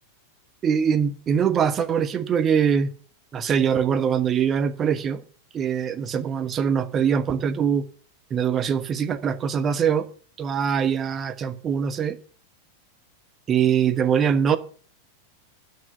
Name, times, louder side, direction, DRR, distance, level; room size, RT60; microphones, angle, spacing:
voice 1, 0.6-2.9 3.3-5.2 5.5-7.8 8.3-10.1 10.4-12.2 13.5-14.6, right 7 dB, 25° right, 1.1 m, -23 dB
12.0 x 6.1 x 7.9 m
figure-of-eight pair, 90°, 0 cm